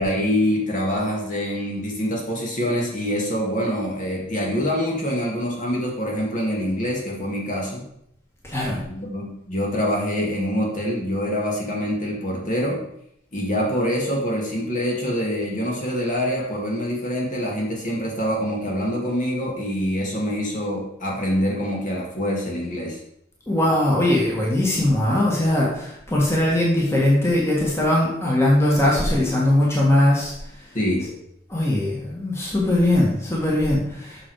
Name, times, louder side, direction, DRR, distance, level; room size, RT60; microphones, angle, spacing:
voice 1, 0.0-7.8 8.7-12.8 13.3-23.0 30.7-31.1, equal, 40° left, -2 dB, 2.0 m, -25 dB
voice 2, 8.4-8.8 23.5-30.7 31.5-34.3, left 1 dB, 15° left, -4 dB, 1.7 m, -20 dB
7.4 x 6.4 x 4.8 m, 0.73 s
head